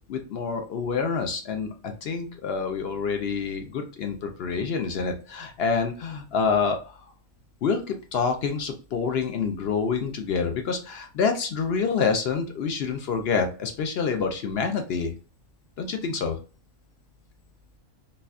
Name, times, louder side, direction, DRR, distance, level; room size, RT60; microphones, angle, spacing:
voice 1, 0.1-7.0 7.6-15.1 15.8-16.4, left 5 dB, 60° left, 5 dB, 0.6 m, -27 dB
4.0 x 2.7 x 2.4 m, 0.36 s
omnidirectional pair, 1.5 m